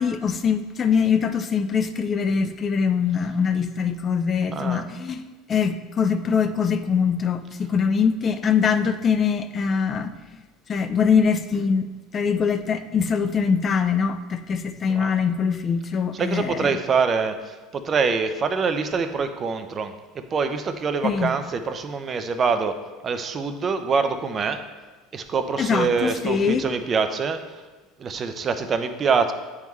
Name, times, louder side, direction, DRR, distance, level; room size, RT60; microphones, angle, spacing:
voice 1, 0.0-10.4 10.7-11.9 12.1-16.8 21.0-21.3 25.6-26.7, left 6 dB, 35° left, 9 dB, 0.4 m, -23 dB
voice 2, 4.5-4.8 14.9-15.1 16.1-19.9 20.3-22.8 23.0-24.6 25.1-27.4 28.0-29.3, right 5 dB, 35° right, 8 dB, 0.5 m, -25 dB
8.9 x 3.6 x 3.1 m, 1.2 s
hypercardioid pair, 85°, 0 cm